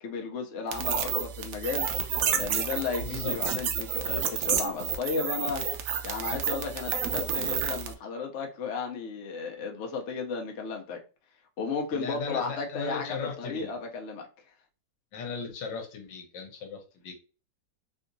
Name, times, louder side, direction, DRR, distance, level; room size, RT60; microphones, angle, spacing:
voice 1, 0.0-5.7 6.0-11.0 11.6-14.3, left 5 dB, 60° left, 0.7 m, -34 dB
sound 1, 0.7-7.9, right 7 dB, 90° right, 0.7 m, -30 dB
voice 2, 3.0-3.4 11.9-13.7 15.1-17.2, left 5 dB, 75° left, 1.5 m, -37 dB
3.4 x 2.8 x 2.6 m
omnidirectional pair, 2.0 m